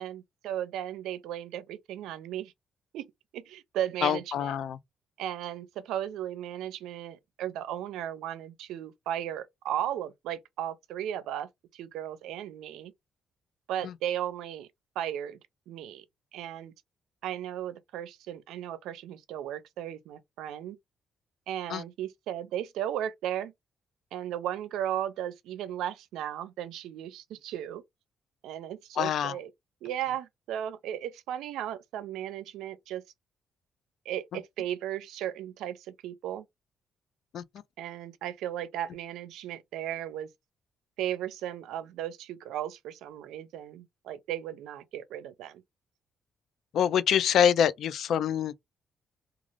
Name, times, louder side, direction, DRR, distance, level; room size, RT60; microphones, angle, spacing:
voice 1, 0.0-2.5 2.9-3.1 3.3-4.5 5.2-12.9 13.7-14.7 15.0-15.4 15.7-16.0 16.3-16.7 17.2-20.8 21.5-23.5 24.1-27.8 28.4-29.5 29.8-33.0 34.1-36.4 37.8-40.3 41.0-45.6, right 11 dB, 90° right, 0.5 m, -35 dB
voice 2, 4.0-4.8 13.8-13.9 21.7-21.8 29.0-29.3 37.3-37.4 46.7-48.5, left 9 dB, 70° left, 0.4 m, -25 dB
2.4 x 2.4 x 3.2 m
cardioid pair, 90°, 0 cm